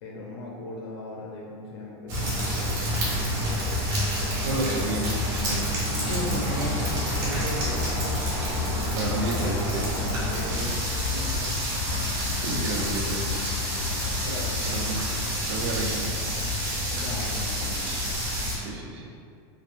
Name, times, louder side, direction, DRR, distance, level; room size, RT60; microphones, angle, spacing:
voice 1, 0.0-2.7 6.0-7.0 7.3-8.0 9.9-10.8 11.1-11.5 13.8-14.7 16.9-17.9, left 1 dB, 70° left, -2 dB, 0.5 m, -37 dB
sound 1, 2.1-18.6, left 1 dB, 50° right, 1.1 m, -28 dB
voice 2, 4.3-5.7 8.9-9.9 11.3-11.4 12.4-13.5 14.7-15.0 15.4-16.1 18.3-19.1, right 2 dB, 80° right, -1 dB, 0.6 m, -31 dB
sound 2, 5.9-6.3 6.7-7.3 7.7-8.5 9.0-9.7 10.3-10.9 11.5-12.2 12.5-13.0, equal, 5° right, 0.5 m, -47 dB
3.2 x 2.5 x 2.5 m, 2.3 s
supercardioid pair, 175°, 14 cm